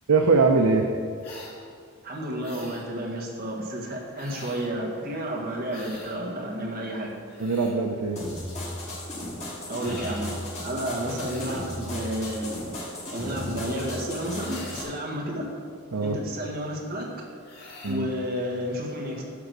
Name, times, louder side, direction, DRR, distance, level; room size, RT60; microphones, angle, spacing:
voice 1, 0.1-0.9 7.4-8.2 15.9-16.2 17.8-18.1, right 4 dB, 90° right, 3 dB, 0.7 m, -22 dB
sound 1, 1.2-1.6 2.4-2.9 4.1-4.7 5.7-6.2 7.1-7.8 9.8-10.3 11.2-11.7 14.4-15.0 17.4-18.0, left 2 dB, 50° left, 2.3 m, -44 dB
voice 2, 2.0-7.2 9.7-12.5 13.1-15.5 16.0-17.1 17.8-19.2, equal, 45° right, -2 dB, 1.8 m, -31 dB
sound 2, 8.2-14.8, left 1 dB, 30° left, 2.1 m, -35 dB
11.5 x 4.9 x 6.7 m, 2.2 s
head